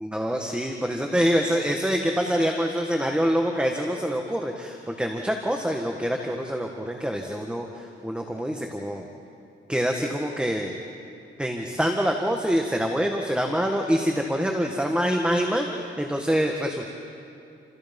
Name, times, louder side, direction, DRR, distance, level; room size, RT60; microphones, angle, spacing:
voice 1, 0.1-9.1 9.7-10.7 11.4-16.9, equal, 5° right, 2 dB, 1.8 m, -25 dB
30.0 x 28.0 x 5.5 m, 2.6 s
cardioid pair, 115°, 20 cm